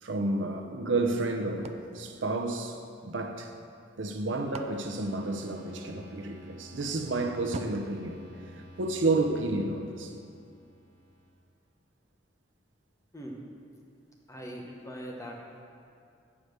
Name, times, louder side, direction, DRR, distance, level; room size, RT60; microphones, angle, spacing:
voice 1, 0.0-3.5 4.0-8.2 8.6-10.1, right 2 dB, 85° right, 4 dB, 0.7 m, -31 dB
sound 1, 1.6-3.2 4.0-6.0 7.5-9.1, right 3 dB, 35° right, 0.3 m, -46 dB
sound 2, 4.8-11.3, equal, 15° right, 2.3 m, -51 dB
voice 2, 14.3-15.4, equal, 15° left, -1 dB, 1.0 m, -41 dB
8.2 x 5.0 x 6.6 m, 2.4 s
head